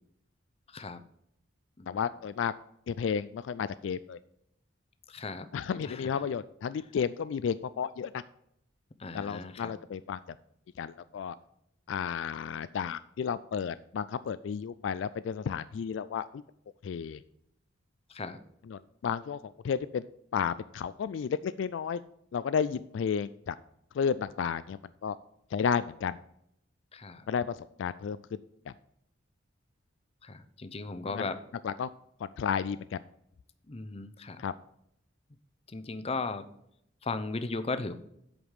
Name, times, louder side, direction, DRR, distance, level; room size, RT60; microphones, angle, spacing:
voice 1, 0.7-1.0 1.8-1.9 5.1-5.5 5.8-6.2 9.0-9.7 18.1-18.4 26.9-27.3 30.2-31.4 33.7-34.4 35.7-36.5 37.0-37.9, left 3 dB, 30° left, 10 dB, 0.7 m, -36 dB
voice 2, 1.9-2.5 2.9-4.2 5.5-8.2 9.1-10.2 10.8-11.4 11.9-16.4 16.8-17.2 18.7-20.1 20.3-22.0 22.3-23.6 23.9-25.2 25.5-26.2 27.3-28.4 28.7-28.8 31.1-31.3 31.6-31.9 32.2-33.0 34.4-34.5, left 7 dB, 70° left, 14 dB, 0.3 m, -32 dB
8.0 x 5.1 x 7.2 m, 0.75 s
head